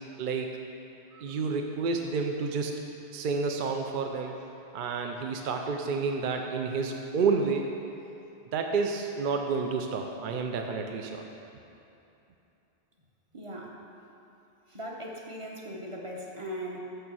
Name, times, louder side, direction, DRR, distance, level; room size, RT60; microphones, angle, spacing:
voice 1, 0.2-0.5 1.1-2.8 3.1-4.4 4.7-7.7 8.5-11.2, right 4 dB, 60° right, 3 dB, 0.6 m, -30 dB
voice 2, 13.3-13.8 14.7-16.8, equal, 30° right, -1 dB, 0.9 m, -39 dB
6.6 x 6.5 x 6.1 m, 2.8 s
omnidirectional pair, 1.1 m